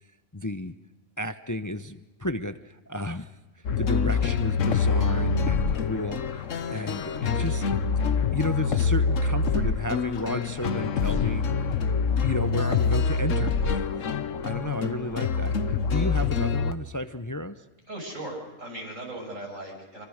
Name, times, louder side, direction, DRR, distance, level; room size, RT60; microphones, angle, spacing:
voice 1, 0.3-0.7 1.2-3.3 3.8-7.6 8.3-11.8 12.2-13.8 14.4-15.6 15.9-17.6, left 1 dB, 20° left, 11 dB, 0.6 m, -32 dB
sound 1, 3.7-16.7, left 5 dB, 80° left, 1.4 m, -25 dB
voice 2, 17.9-20.0, right 1 dB, 85° right, 1 dB, 7.2 m, -38 dB
26.5 x 24.5 x 6.5 m, 1.1 s
omnidirectional pair, 1.3 m